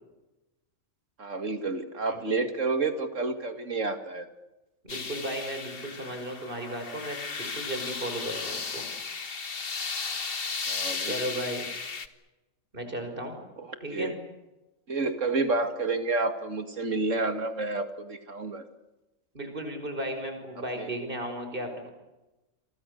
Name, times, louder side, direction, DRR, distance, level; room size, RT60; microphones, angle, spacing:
voice 1, 1.2-4.3 10.7-11.3 13.6-14.1 14.9-18.7 20.8-20.9, right 3 dB, 65° right, 8 dB, 2.6 m, -30 dB
voice 2, 4.8-8.9 11.0-11.6 12.7-13.4 13.8-14.1 19.3-21.9, right 1 dB, 40° right, 6 dB, 5.6 m, -35 dB
sound 1, 4.9-12.1, left 4 dB, 45° left, 1.6 m, -35 dB
29.5 x 23.5 x 6.7 m, 1.0 s
omnidirectional pair, 1.4 m